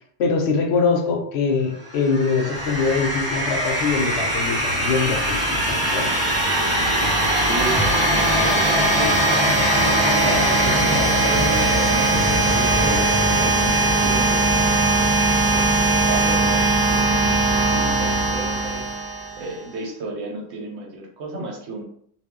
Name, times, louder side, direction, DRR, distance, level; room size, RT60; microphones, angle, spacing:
voice 1, 0.2-6.1, left 4 dB, 75° left, 3 dB, 0.8 m, -23 dB
sound 1, 1.9-19.5, right 1 dB, 25° right, 0.5 m, -20 dB
sound 2, 2.5-13.5, equal, 5° right, 0.9 m, -32 dB
voice 2, 7.4-9.4 9.8-14.8 15.4-19.1 19.4-21.8, right 2 dB, 80° right, 0 dB, 1.0 m, -33 dB
2.3 x 2.0 x 3.6 m, 0.64 s
omnidirectional pair, 1.1 m